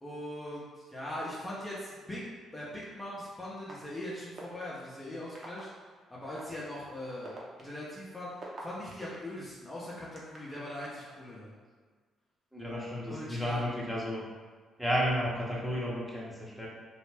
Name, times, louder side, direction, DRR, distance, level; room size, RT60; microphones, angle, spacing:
voice 1, 0.0-2.2 2.5-5.7 6.1-7.4 7.6-8.3 8.6-11.5 13.1-13.8, left 1 dB, 20° left, -7 dB, 0.7 m, -40 dB
sound 1, 2.8-2.9 3.7-3.8 4.4-4.6 5.3-5.6 6.4-6.5 7.1-9.2 9.8-10.6, right 3 dB, 45° right, 0.7 m, -46 dB
voice 2, 12.5-14.2 14.8-16.7, equal, ahead, -6 dB, 0.8 m, -32 dB
2.5 x 2.0 x 3.3 m, 1.5 s
hypercardioid pair, 50°, 0 cm